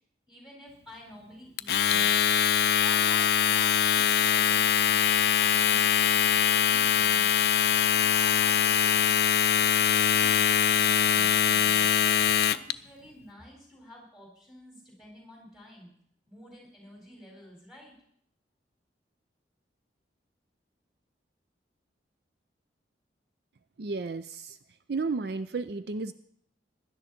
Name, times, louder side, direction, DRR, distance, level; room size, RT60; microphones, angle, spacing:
voice 1, 0.3-2.1 12.5-15.9 16.3-17.9, left 1 dB, ahead, -1 dB, 4.7 m, -51 dB
Domestic sounds home sounds, 1.6-12.7, left 9 dB, 55° left, 0.4 m, -23 dB
voice 2, 23.8-24.6 24.9-26.1, right 4 dB, 60° right, 12 dB, 0.5 m, -32 dB
16.5 x 11.5 x 4.3 m, 0.68 s
head